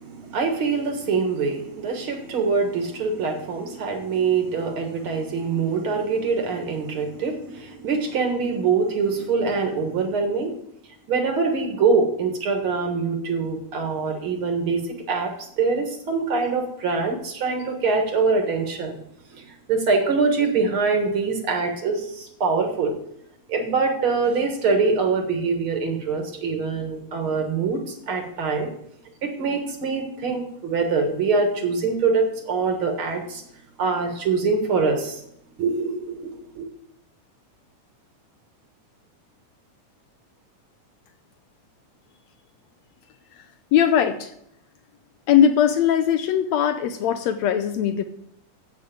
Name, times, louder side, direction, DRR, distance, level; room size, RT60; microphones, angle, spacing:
voice 1, 0.0-10.6 11.1-14.8 15.1-15.3 15.6-19.0 19.4-22.9 23.5-28.7 29.2-33.4 33.8-35.2 35.6-36.7, right 4 dB, 50° right, 4 dB, 1.9 m, -24 dB
voice 2, 43.7-44.3 45.3-48.0, left 9 dB, 80° left, 9 dB, 1.5 m, -20 dB
8.1 x 7.5 x 8.5 m, 0.74 s
omnidirectional pair, 3.7 m